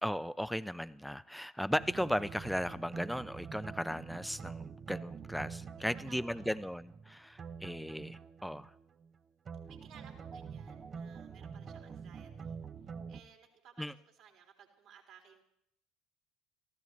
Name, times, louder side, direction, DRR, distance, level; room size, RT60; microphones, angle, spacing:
voice 1, 0.0-8.7 13.8-13.9, equal, ahead, 16 dB, 0.6 m, -36 dB
sound 1, 1.7-9.2 9.5-13.2, right 6 dB, 35° right, 0.9 m, -46 dB
voice 2, 5.8-6.6 9.6-12.6 13.1-15.4, right 7 dB, 55° right, 3 dB, 3.4 m, -59 dB
26.5 x 16.0 x 3.2 m, 0.73 s
figure-of-eight pair, 65°, 0 cm